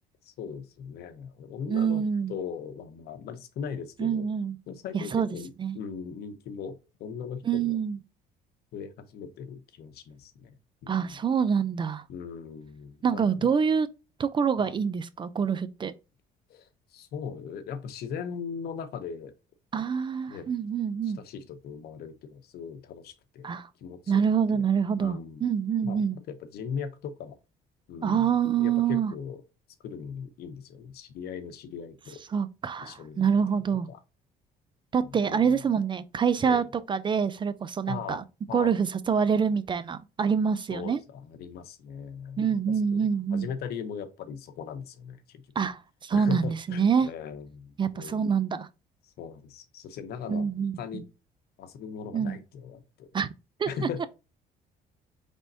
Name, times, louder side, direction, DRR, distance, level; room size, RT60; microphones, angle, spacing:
voice 1, 0.2-2.0 2.3-4.2 4.7-7.8 8.7-10.6 10.8-11.2 12.1-13.5 14.6-14.7 16.5-19.3 20.3-20.5 21.0-23.5 23.8-24.2 24.5-24.6 25.0-25.4 25.8-27.4 27.9-28.3 28.6-29.4 29.8-32.2 32.8-33.3 33.7-34.0 35.0-35.6 36.4-36.7 37.9-38.2 38.5-38.7 40.7-45.4 46.1-48.3 49.2-50.5 50.8-51.1 51.6-53.1 53.7-54.1, left 7 dB, 70° left, 0.8 m, -39 dB
voice 2, 1.7-2.3 4.0-4.6 4.9-5.3 5.6-5.8 7.4-8.0 10.9-12.0 13.0-13.9 14.2-15.9 19.7-21.2 23.4-23.7 24.1-26.2 28.0-29.1 32.3-33.9 34.9-38.2 38.5-41.0 42.4-43.5 45.6-47.1 47.8-48.7 50.3-51.0 52.1-52.4 53.1-53.3 53.6-53.7, right 7 dB, 30° right, 0.4 m, -26 dB
5.0 x 3.5 x 2.6 m
cardioid pair, 110°, 17 cm